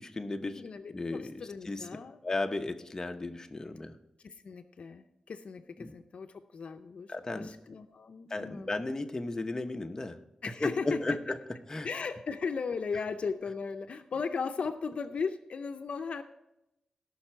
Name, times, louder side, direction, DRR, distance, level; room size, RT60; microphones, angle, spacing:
voice 1, 0.0-0.6 0.9-1.9 2.2-4.0 5.8-5.9 7.1-7.5 8.3-10.2 10.6-11.4 11.7-11.9, left 2 dB, 25° left, 6 dB, 0.8 m, -35 dB
voice 2, 0.6-2.2 4.2-8.8 10.4-11.2 11.8-16.2, left 5 dB, 70° left, 9 dB, 0.5 m, -37 dB
17.5 x 5.9 x 4.4 m, 0.89 s
wide cardioid pair, 105°, 2 cm